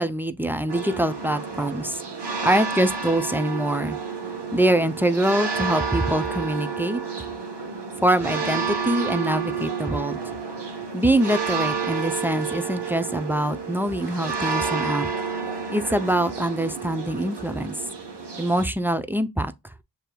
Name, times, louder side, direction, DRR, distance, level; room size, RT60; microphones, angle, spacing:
voice 1, 0.0-2.0 2.4-4.0 4.5-7.0 8.0-10.2 10.9-15.1 15.7-17.8 18.4-19.7, right 1 dB, 5° right, 0.4 m, -24 dB
sound 1, 0.7-18.6, right 5 dB, 80° right, 1.0 m, -30 dB
6.5 x 2.8 x 2.2 m
cardioid pair, 60°, 40 cm